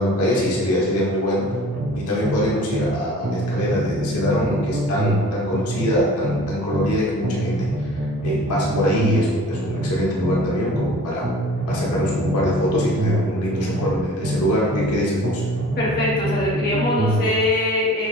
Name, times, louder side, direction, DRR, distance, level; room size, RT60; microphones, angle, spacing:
voice 1, 0.0-1.5 1.9-11.3 11.7-15.4, equal, 85° left, -5 dB, 1.1 m, -23 dB
sound 1, 1.5-3.0 3.2-7.0 7.2-11.0 11.2-15.0 15.2-17.3, right 1 dB, 50° right, 0.7 m, -25 dB
voice 2, 15.8-18.1, left 2 dB, 40° left, -7 dB, 1.2 m, -22 dB
6.1 x 3.4 x 2.5 m, 1.5 s
head